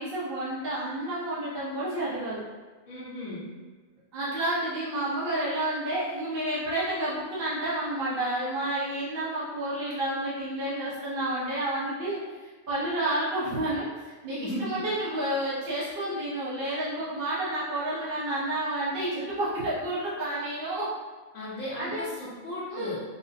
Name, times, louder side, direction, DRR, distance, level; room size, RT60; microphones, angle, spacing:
voice 1, 0.0-2.4 4.1-12.2 12.7-20.9 21.8-22.0 22.7-22.9, right 1 dB, 45° right, -10 dB, 1.0 m, -30 dB
voice 2, 2.9-3.5 14.4-14.8 21.3-23.0, left 1 dB, 60° left, -10 dB, 1.3 m, -35 dB
4.8 x 2.1 x 2.6 m, 1.4 s
omnidirectional pair, 1.5 m